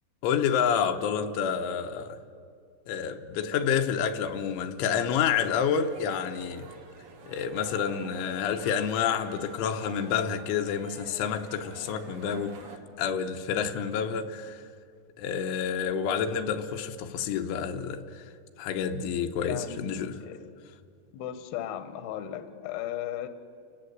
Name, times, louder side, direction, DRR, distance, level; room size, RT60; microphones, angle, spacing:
voice 1, 0.2-2.2 2.9-6.7 7.3-12.6 13.0-14.6 15.2-18.3 18.6-20.2, left 7 dB, 85° left, 3.5 m, -29 dB
sound 1, 5.1-12.8, right 5 dB, 55° right, 1.6 m, -48 dB
voice 2, 19.4-20.5 21.1-23.3, left 11 dB, 70° left, 2.7 m, -36 dB
30.0 x 17.5 x 8.0 m
omnidirectional pair, 5.5 m